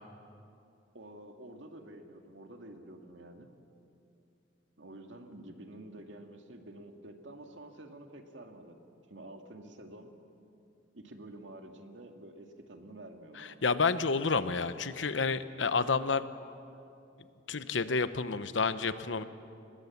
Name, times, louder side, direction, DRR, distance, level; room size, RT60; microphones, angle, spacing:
voice 1, 0.9-3.5 4.8-8.8 9.1-10.1 10.9-13.6, right 1 dB, 85° right, 4 dB, 2.1 m, -49 dB
voice 2, 13.4-16.3 17.5-19.2, left 4 dB, 90° left, 12 dB, 0.9 m, -30 dB
25.5 x 20.0 x 7.3 m, 2.6 s
head